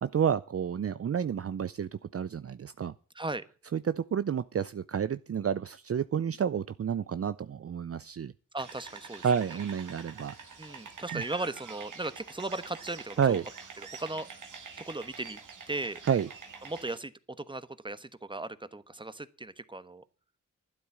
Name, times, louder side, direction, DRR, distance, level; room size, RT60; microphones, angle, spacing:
voice 1, 0.0-2.9 3.7-8.3 9.2-10.3 11.1-11.2 13.2-13.4 16.1-16.3, right 7 dB, 50° right, 14 dB, 0.6 m, -30 dB
voice 2, 8.5-9.3 10.6-13.4 13.8-14.3 14.8-15.4 15.7-16.0 16.6-17.1 17.4-20.0, right 2 dB, 15° right, 13 dB, 1.1 m, -37 dB
sound 1, 8.6-17.0, right 5 dB, 80° right, 2.1 m, -46 dB
12.0 x 9.4 x 7.3 m, 0.38 s
cardioid pair, 55°, 30 cm